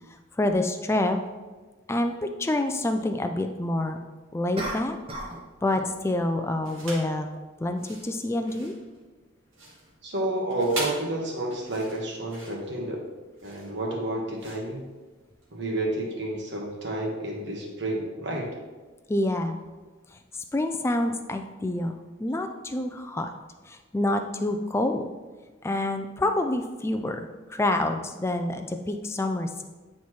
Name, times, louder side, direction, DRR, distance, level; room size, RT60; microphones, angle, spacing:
voice 1, 0.4-1.2 1.9-4.0 4.3-5.0 5.6-7.3 7.6-8.7 19.1-19.6 20.5-21.9 22.2-23.3 23.7-25.1 25.6-29.6, left 1 dB, 15° left, 6 dB, 0.3 m, -27 dB
sound 1, 0.5-0.6 4.6-5.4 5.7-6.0, right 1 dB, 30° right, 0.9 m, -35 dB
sound 2, 6.6-7.2 7.7-15.5, right 2 dB, 90° right, 1.6 m, -40 dB
voice 2, 10.0-13.0 13.4-14.9 15.5-18.5, right 1 dB, 60° right, -1 dB, 1.3 m, -30 dB
9.2 x 4.3 x 3.1 m, 1.3 s
head